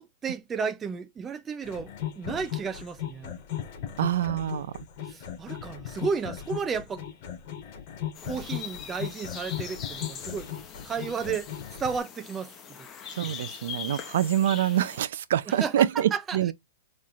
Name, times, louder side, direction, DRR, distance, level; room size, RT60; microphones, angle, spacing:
voice 1, 0.0-3.3 5.1-7.1 8.2-10.5 10.8-11.5 11.8-12.5 15.5-16.5, right 6 dB, 15° right, 0.5 m, -33 dB
sound 1, 1.6-12.0, left 10 dB, 40° left, 2.8 m, -37 dB
voice 2, 4.0-4.7 13.1-16.5, right 11 dB, 70° right, 0.5 m, -26 dB
sound 2, 8.1-15.0, left 8 dB, 20° left, 0.8 m, -42 dB
5.7 x 3.2 x 2.5 m
hypercardioid pair, 150°, 0 cm